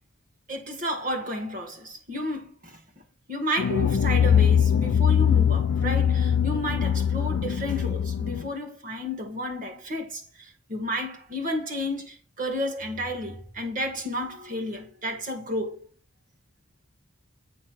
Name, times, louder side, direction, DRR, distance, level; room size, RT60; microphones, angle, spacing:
voice 1, 0.5-3.0 3.3-15.8, equal, 40° right, 2.2 m, -32 dB
sound 1, 3.6-8.5, left 8 dB, 80° left, 0.4 m, -22 dB
8.7 x 3.2 x 6.2 m
head